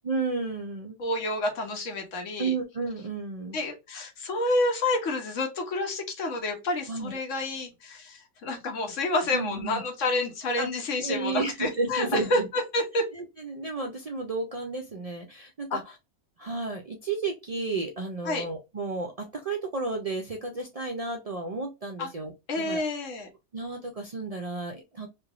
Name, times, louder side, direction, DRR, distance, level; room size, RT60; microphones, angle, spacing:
voice 1, 0.0-0.9 2.4-3.6 6.9-7.2 9.3-9.8 10.6-10.7 11.0-12.5 13.1-16.0 16.4-22.8 23.5-25.1, right 3 dB, 60° right, 2 dB, 0.4 m, -32 dB
voice 2, 1.0-2.5 3.5-13.0 15.7-15.8 18.2-18.4 22.0-22.1 22.5-23.3, left 2 dB, 90° left, 4 dB, 1.3 m, -29 dB
3.1 x 2.6 x 2.4 m, 0.25 s
omnidirectional pair, 1.3 m